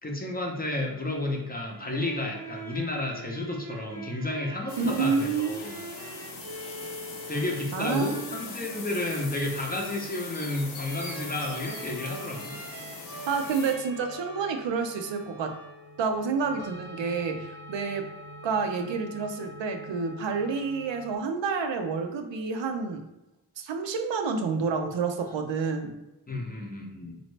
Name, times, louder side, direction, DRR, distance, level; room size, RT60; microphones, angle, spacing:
voice 1, 0.0-5.8 7.3-12.6 26.3-27.2, left 1 dB, 20° left, 1 dB, 0.5 m, -32 dB
sound 1, 1.5-16.1, right 2 dB, 55° right, 0.8 m, -44 dB
sound 2, 4.7-13.7, left 4 dB, 70° left, 0.8 m, -41 dB
voice 2, 4.8-5.7 7.7-8.4 13.3-15.6 16.0-18.1 18.4-23.0 23.6-25.9, right 5 dB, 85° right, 5 dB, 0.6 m, -29 dB
sound 3, 11.1-21.2, left 1 dB, 25° right, 0.6 m, -46 dB
4.1 x 2.6 x 3.2 m, 0.96 s
wide cardioid pair, 140°, 43 cm